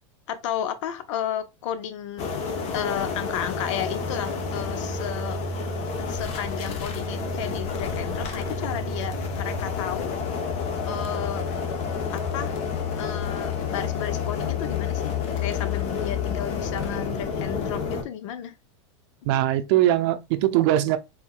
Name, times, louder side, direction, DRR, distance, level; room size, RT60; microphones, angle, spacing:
voice 1, 0.3-2.3 2.7-5.4 6.1-10.1 10.9-11.4 12.1-12.6 13.0-15.0 15.4-18.5, left 10 dB, 70° left, 0.7 m, -33 dB
sound 1, 2.2-18.0, left 5 dB, 40° left, 0.9 m, -29 dB
voice 2, 19.2-21.0, right 13 dB, 55° right, 0.6 m, -21 dB
4.4 x 4.0 x 2.4 m
supercardioid pair, 140°, 16 cm